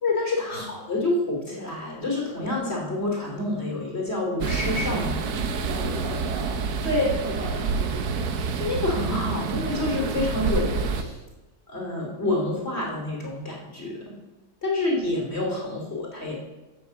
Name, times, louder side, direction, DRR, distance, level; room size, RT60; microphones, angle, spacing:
voice 1, 0.0-5.5 6.8-7.1 8.6-11.2 11.7-14.1 14.6-16.4, left 2 dB, 40° left, -1 dB, 3.2 m, -28 dB
sound 1, 4.4-11.0, right 5 dB, 65° right, 1.4 m, -28 dB
voice 2, 5.7-8.5, right 1 dB, 40° right, -4 dB, 3.6 m, -38 dB
15.0 x 6.4 x 7.0 m, 1.1 s
omnidirectional pair, 1.8 m